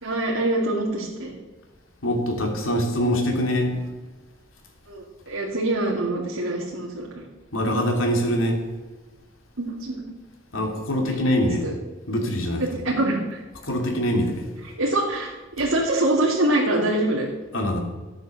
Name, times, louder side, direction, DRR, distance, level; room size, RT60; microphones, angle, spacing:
voice 1, 0.0-1.3 4.9-7.2 9.6-10.1 11.1-11.2 11.6-11.7 12.6-13.4 14.8-17.2, right 1 dB, 85° right, -4 dB, 2.4 m, -24 dB
voice 2, 2.0-3.8 7.5-8.6 10.5-11.7 12.1-12.6 13.6-14.5 17.5-17.8, equal, 80° left, 2 dB, 2.8 m, -23 dB
14.0 x 8.8 x 6.7 m, 1.2 s
head